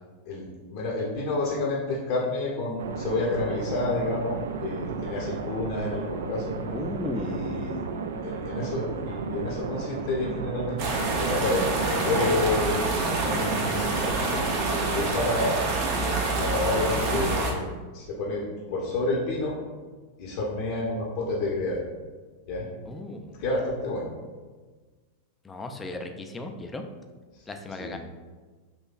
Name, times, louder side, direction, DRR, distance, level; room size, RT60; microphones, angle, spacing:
voice 1, 0.3-6.5 7.2-7.8 8.2-12.8 13.2-14.0 14.9-15.5 16.3-19.6 20.2-21.8 22.5-22.7 23.4-24.1 27.3-27.4 27.8-28.0, left 2 dB, 50° left, -4 dB, 0.8 m, -29 dB
sound 1, 2.8-15.0, right 5 dB, 60° right, 0.3 m, -34 dB
voice 2, 6.7-7.6 22.9-23.4 25.4-26.8 27.5-28.0, left 2 dB, 15° left, 5 dB, 0.4 m, -35 dB
sound 2, 10.8-17.5, right 3 dB, 45° right, 0.7 m, -27 dB
5.5 x 3.1 x 2.4 m, 1.4 s
figure-of-eight pair, 90°, 0 cm